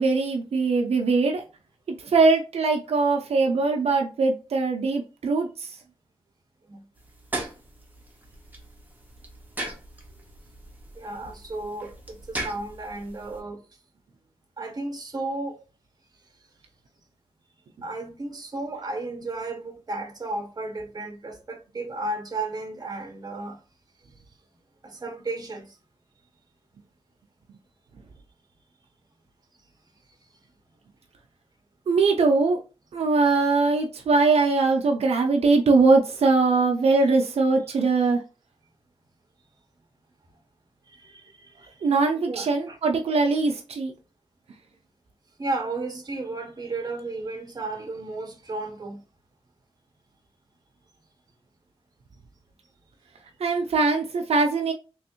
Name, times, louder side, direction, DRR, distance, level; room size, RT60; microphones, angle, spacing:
voice 1, 0.0-1.4 2.0-5.7 31.9-32.6 32.9-38.2 41.8-43.9 53.4-54.7, right 3 dB, 85° right, 0.5 m, -21 dB
sound 1, 7.0-13.4, right 2 dB, 15° right, 1.0 m, -38 dB
voice 2, 10.9-13.6 14.6-15.6 17.8-23.6 24.8-25.7 40.9-41.9 42.3-42.8 45.4-49.0, right 2 dB, 40° right, 0.9 m, -33 dB
3.4 x 3.1 x 2.9 m
wide cardioid pair, 90°, 10 cm